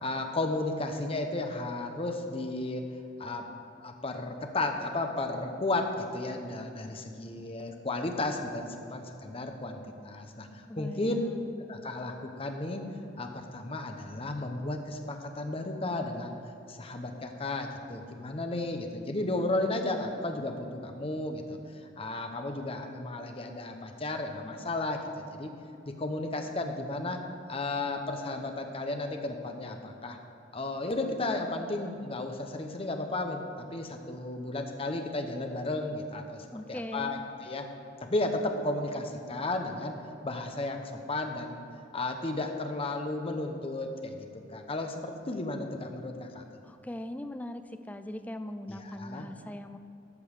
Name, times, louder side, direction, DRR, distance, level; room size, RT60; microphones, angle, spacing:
voice 1, 0.0-2.8 3.2-3.5 3.8-11.2 11.7-12.9 13.2-16.4 16.7-21.6 22.0-25.5 25.9-27.2 27.5-30.2 30.5-37.7 38.0-40.0 40.2-41.6 41.9-44.2 44.5-46.4 48.7-49.3, left 2 dB, 30° left, 5 dB, 0.9 m, -34 dB
voice 2, 10.7-11.6 36.5-37.2 46.6-49.8, left 1 dB, 10° left, 9 dB, 0.4 m, -40 dB
13.0 x 5.4 x 6.6 m, 2.7 s
head